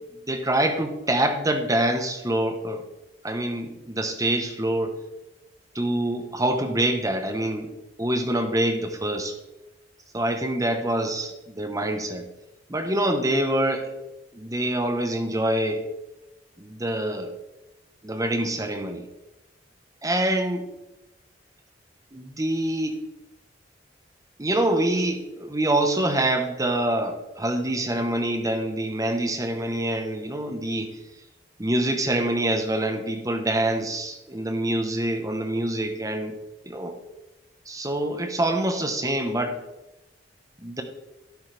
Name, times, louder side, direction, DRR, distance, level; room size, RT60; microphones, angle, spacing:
voice 1, 0.3-2.8 3.2-5.0 5.7-7.7 8.0-9.3 10.1-12.3 12.7-13.9 14.3-15.9 16.6-17.3 18.0-19.1 20.0-20.7 22.1-23.0 24.4-31.0 31.6-36.4 36.6-36.9 37.7-39.6 40.6-40.8, right 1 dB, 20° right, 6 dB, 1.2 m, -25 dB
12.0 x 10.0 x 3.4 m, 0.96 s
head